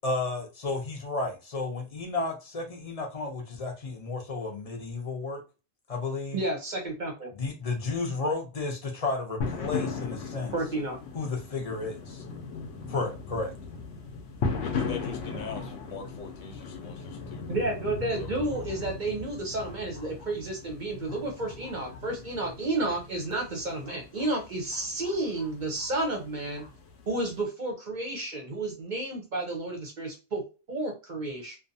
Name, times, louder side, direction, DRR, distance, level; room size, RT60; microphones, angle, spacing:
voice 1, 0.0-5.4 5.9-6.4 7.3-10.5 11.1-12.2 12.9-13.5, left 3 dB, 40° left, 0.6 m, -32 dB
voice 2, 6.3-7.3 10.5-11.0 17.5-26.6 27.1-30.4 30.7-31.6, right 2 dB, 50° right, 0.7 m, -31 dB
sound 1, 9.4-27.4, left 4 dB, 70° left, 0.8 m, -38 dB
voice 3, 14.6-17.4 18.2-18.6, left 5 dB, 85° left, 1.1 m, -42 dB
2.6 x 2.2 x 2.6 m
omnidirectional pair, 1.2 m